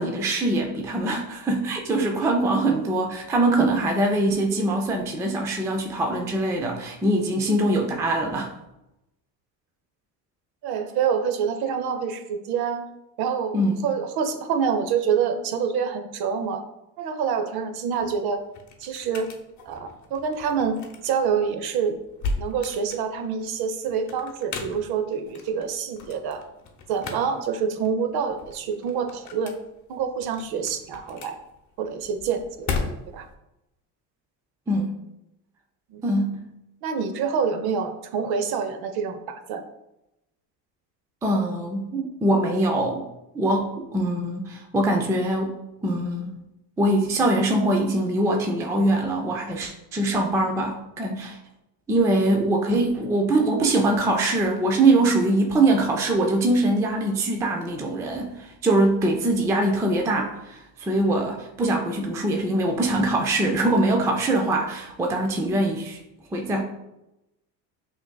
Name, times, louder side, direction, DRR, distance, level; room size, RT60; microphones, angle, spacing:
voice 1, 0.0-8.5 13.5-13.7 34.7-34.9 36.0-36.4 41.2-43.1 43.3-46.3 46.8-51.4 51.9-66.0 66.3-66.7, right 2 dB, 5° right, 2 dB, 0.3 m, -23 dB
voice 2, 10.6-12.9 13.2-16.6 17.0-18.4 18.8-19.3 19.7-21.9 22.4-26.4 26.9-29.6 29.9-31.4 31.8-32.7 33.1-33.3 35.9-36.0 36.8-39.6, right 6 dB, 50° right, 7 dB, 0.6 m, -26 dB
sound 1, 17.8-33.3, left 4 dB, 35° left, 0.8 m, -37 dB
5.8 x 2.6 x 2.2 m, 0.90 s
supercardioid pair, 90°, 49 cm